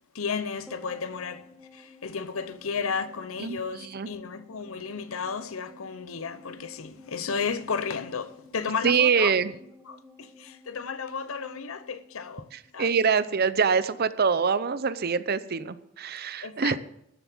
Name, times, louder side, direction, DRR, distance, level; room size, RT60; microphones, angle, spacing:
voice 1, 0.1-9.3 9.9-13.3 16.4-16.8, left 5 dB, 80° left, 0.8 m, -33 dB
sound 1, 0.7-13.2 13.4-13.5, left 1 dB, 5° right, 1.5 m, -53 dB
voice 2, 3.4-4.1 8.8-9.5 12.8-16.8, right 6 dB, 50° right, 0.6 m, -24 dB
13.5 x 7.2 x 7.4 m
head